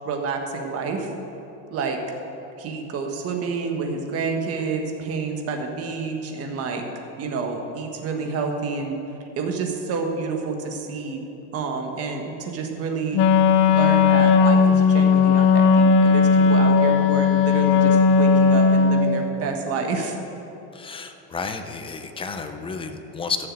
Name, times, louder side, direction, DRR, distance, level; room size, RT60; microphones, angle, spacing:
voice 1, 0.0-1.1 1.7-2.0 2.6-6.8 7.2-9.0 9.4-13.2 13.7-20.2, right 4 dB, 40° right, 3 dB, 1.5 m, -29 dB
Wind instrument woodwind instrument, 13.1-19.2, left 5 dB, 50° left, 0.7 m, -16 dB
voice 2, 20.7-23.5, left 4 dB, 15° left, 7 dB, 0.5 m, -31 dB
13.0 x 6.7 x 7.5 m, 3.0 s
cardioid pair, 150°, 39 cm